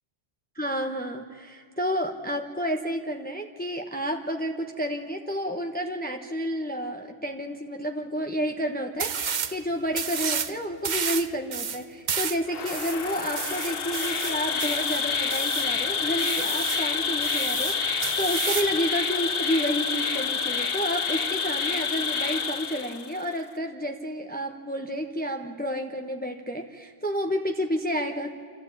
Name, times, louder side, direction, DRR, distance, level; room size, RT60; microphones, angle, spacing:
voice 1, 0.5-28.3, equal, 10° left, 3 dB, 1.0 m, -30 dB
sound 1, 9.0-9.6 9.9-10.5 10.8-15.7 16.2-16.9 17.2-18.8, right 6 dB, 50° right, 0.8 m, -31 dB
Insect, 12.5-23.2, left 5 dB, 65° left, 1.2 m, -28 dB
27.0 x 14.0 x 8.7 m, 2.2 s
omnidirectional pair, 1.1 m